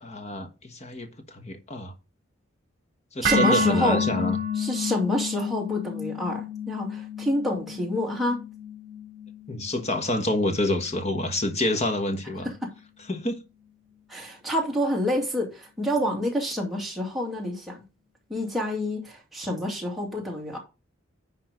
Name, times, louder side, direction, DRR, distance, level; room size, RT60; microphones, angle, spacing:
voice 1, 0.0-1.9 3.1-4.4 9.5-12.5 13.1-13.4, left 1 dB, 35° left, 1.3 m, -27 dB
voice 2, 3.2-4.0 4.5-8.5 12.4-12.7 14.1-17.8 18.3-20.6, left 1 dB, ahead, 2.4 m, -28 dB
sound 1, 3.2-11.4, left 3 dB, 40° right, 3.2 m, -30 dB
10.5 x 3.8 x 5.1 m
head